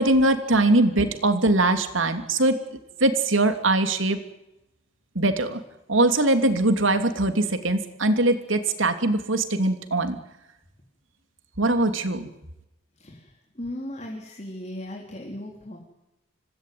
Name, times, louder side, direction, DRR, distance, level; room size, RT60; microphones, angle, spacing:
voice 1, 0.0-2.6 3.0-4.2 5.1-5.6 5.9-10.2 11.6-12.3, right 2 dB, 80° right, 7 dB, 3.0 m, -21 dB
voice 2, 13.0-15.8, left 1 dB, 35° left, 0 dB, 3.9 m, -37 dB
26.5 x 18.5 x 9.5 m, 0.91 s
head